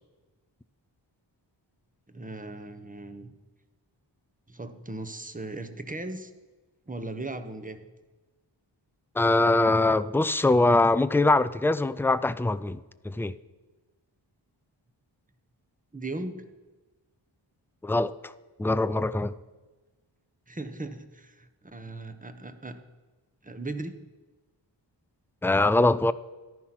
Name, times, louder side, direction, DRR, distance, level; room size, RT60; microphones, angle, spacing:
voice 1, 2.1-3.3 4.5-6.3 6.9-7.9 15.9-16.5 20.5-22.8 23.4-24.1, right 2 dB, 15° right, 1.1 m, -38 dB
voice 2, 9.2-12.8 13.0-13.3 17.8-18.3 18.6-19.4 25.4-26.1, left 2 dB, 5° left, 0.4 m, -23 dB
14.0 x 11.5 x 6.0 m
wide cardioid pair, 90°, 46 cm